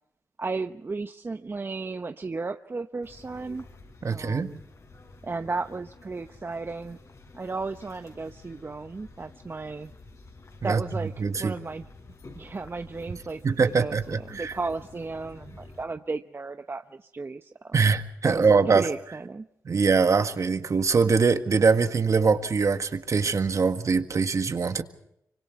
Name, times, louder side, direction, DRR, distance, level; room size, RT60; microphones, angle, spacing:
voice 1, 0.4-3.7 4.1-4.6 5.2-7.0 7.3-9.9 10.6-11.1 11.4-11.9 12.4-17.8 18.2-18.5 18.7-19.5, right 3 dB, 35° right, 8 dB, 0.9 m, -34 dB
sound 1, 3.0-15.8, left 3 dB, 50° left, 5.7 m, -50 dB
voice 2, 4.0-4.5 10.6-10.8 11.2-11.5 13.4-14.5 17.7-18.9 19.6-24.8, right 5 dB, 50° right, 9 dB, 1.7 m, -23 dB
25.0 x 25.0 x 4.7 m, 0.77 s
cardioid pair, 60°, 7 cm